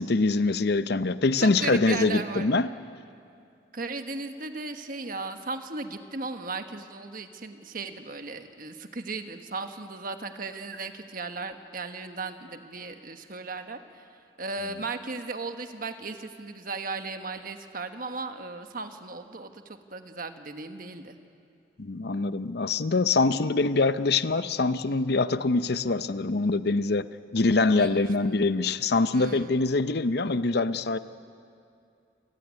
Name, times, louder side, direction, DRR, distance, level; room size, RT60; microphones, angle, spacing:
voice 1, 0.0-2.7 21.8-27.1 27.3-31.0, left 3 dB, 55° left, 13 dB, 0.7 m, -24 dB
voice 2, 1.4-2.5 3.7-14.1 14.4-21.2 27.7-28.4 29.1-29.6, right 3 dB, 50° right, 7 dB, 1.3 m, -36 dB
28.5 x 15.5 x 9.6 m, 2.5 s
head